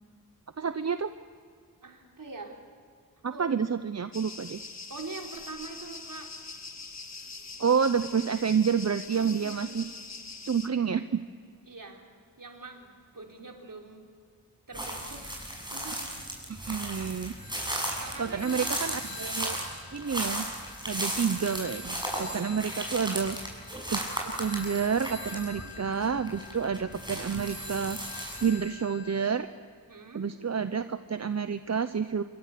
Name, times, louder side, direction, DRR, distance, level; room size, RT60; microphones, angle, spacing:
voice 1, 0.6-1.1 3.2-4.6 7.6-9.9 10.4-11.2 16.5-17.3 18.2-19.6 19.9-20.4 20.9-23.4 23.9-28.0 28.4-29.5 30.1-32.2, right 6 dB, 45° right, 11 dB, 0.8 m, -29 dB
voice 2, 1.8-2.6 3.3-3.5 4.9-6.3 9.1-9.9 11.7-12.0 12.4-14.0 14.7-15.3 15.7-16.2 18.0-18.7 23.0-23.2 25.4-25.7 29.9-30.3, right 3 dB, 60° right, 1 dB, 4.2 m, -44 dB
sound 1, 4.1-10.7, left 4 dB, 45° left, 1.8 m, -43 dB
sound 2, 14.7-28.5, right 1 dB, 10° right, 7.4 m, -36 dB
Telephone, 17.4-21.0 21.3-29.3, left 2 dB, 75° left, 4.9 m, -46 dB
26.5 x 23.0 x 6.8 m, 2.2 s
wide cardioid pair, 60°, 36 cm